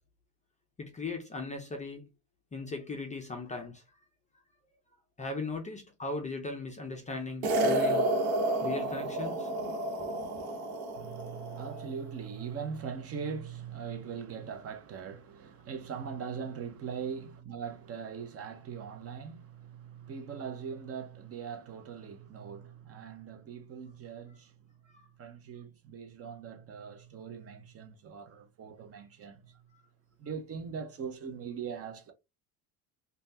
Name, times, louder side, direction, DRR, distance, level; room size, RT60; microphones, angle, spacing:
voice 1, 0.8-2.0 2.5-3.8 5.2-8.1 8.6-9.5 29.7-29.8, left 3 dB, 15° left, 0.4 m, -38 dB
sound 1, 7.4-11.9, right 1 dB, 75° right, 1.1 m, -30 dB
voice 2, 10.9-24.5 25.2-29.6 30.2-32.1, right 6 dB, 35° right, 0.5 m, -41 dB
3.2 x 2.3 x 2.7 m
cardioid pair, 125°, 45 cm